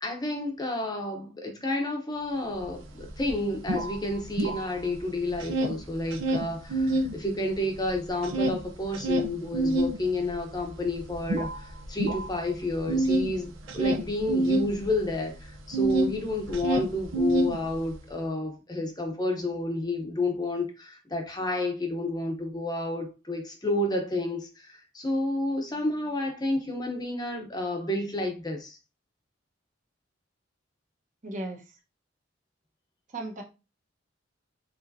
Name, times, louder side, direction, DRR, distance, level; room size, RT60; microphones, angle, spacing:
voice 1, 0.0-28.8, left 1 dB, 20° left, 0.8 m, -30 dB
sound 1, 2.6-2.7 3.0-5.0 5.3-7.1 7.5-16.2 16.4-18.0, right 1 dB, 85° right, 0.7 m, -27 dB
voice 2, 31.2-31.6 33.1-33.4, right 2 dB, 40° right, 1.1 m, -35 dB
4.7 x 4.1 x 2.7 m
head